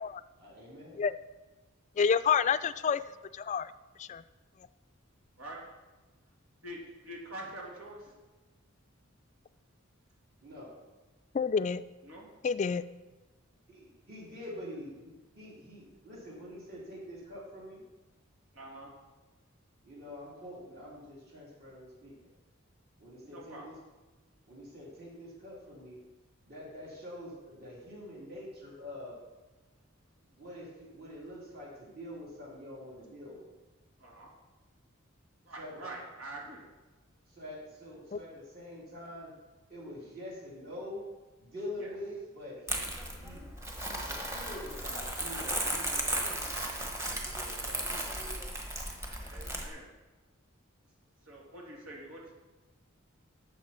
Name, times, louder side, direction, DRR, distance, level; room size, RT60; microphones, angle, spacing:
voice 1, 0.4-1.0 10.4-10.8 13.7-17.8 19.8-22.3 23.0-23.8 24.5-26.0 26.5-29.2 30.3-33.5 35.6-35.7 37.3-39.3 39.7-41.0 41.4-43.5 43.8-46.4 47.1-48.4, left 1 dB, 50° right, -5 dB, 3.4 m, -45 dB
voice 2, 2.0-3.0 3.3-3.7 4.0-4.2 11.3-11.8 12.4-12.8 38.1-38.2, left 6 dB, 35° left, 14 dB, 0.3 m, -28 dB
voice 3, 6.6-8.1 12.0-12.3 18.5-18.9 23.2-23.7 34.0-34.3 35.4-36.6 41.8-41.9 49.2-49.9 51.2-52.3, right 1 dB, 90° right, -2 dB, 2.7 m, -45 dB
Crumpling crinkling, 42.7-49.7, right 1 dB, 15° right, 1.2 m, -35 dB
12.0 x 7.1 x 4.4 m, 1.2 s
head